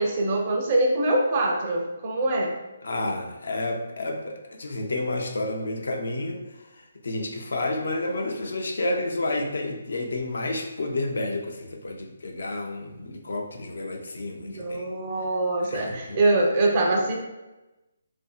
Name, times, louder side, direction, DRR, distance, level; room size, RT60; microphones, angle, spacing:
voice 1, 0.0-2.5 14.4-17.2, right 2 dB, 35° right, 0 dB, 0.5 m, -24 dB
voice 2, 2.8-6.4 7.0-14.8 15.7-16.2, left 2 dB, 75° left, 2 dB, 0.5 m, -30 dB
2.7 x 2.5 x 2.3 m, 1.0 s
hypercardioid pair, 165°, 0 cm